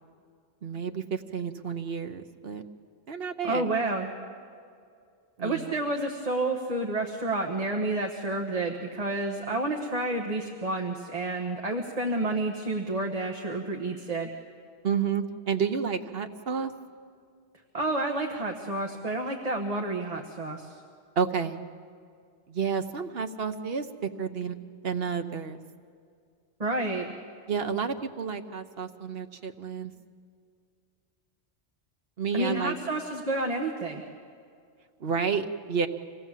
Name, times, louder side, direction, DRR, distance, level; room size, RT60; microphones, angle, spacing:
voice 1, 0.6-2.6 3.1-3.7 5.4-5.7 14.8-16.7 21.2-21.6 22.5-24.6 24.8-25.6 27.5-29.9 32.2-32.8 35.0-35.9, right 6 dB, 60° right, 7 dB, 1.2 m, -30 dB
voice 2, 3.4-4.1 5.4-14.3 17.7-20.8 26.6-27.1 32.3-34.0, right 2 dB, 35° right, 1 dB, 1.4 m, -30 dB
26.0 x 18.0 x 7.4 m, 2.3 s
omnidirectional pair, 1.1 m